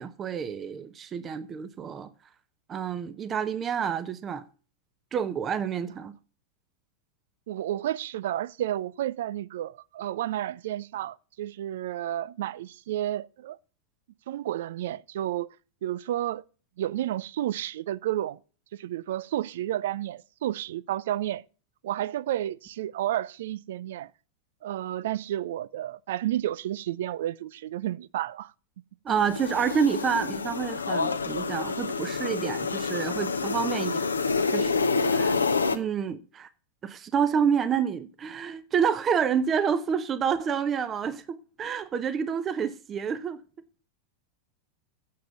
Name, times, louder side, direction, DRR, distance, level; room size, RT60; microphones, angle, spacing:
voice 1, 0.0-2.1 2.7-4.4 5.1-6.1 29.0-34.0 34.5-35.4 35.7-36.5 36.8-43.4, right 7 dB, 25° right, 0.8 m, -28 dB
voice 2, 7.5-13.6 14.3-15.5 15.8-16.4 16.8-18.4 18.7-21.4 21.8-24.1 24.6-28.5, right 12 dB, 55° right, 0.4 m, -31 dB
sound 1, 29.1-35.8, left 4 dB, 75° left, 0.9 m, -28 dB
7.6 x 7.6 x 8.1 m
figure-of-eight pair, 90°, 0 cm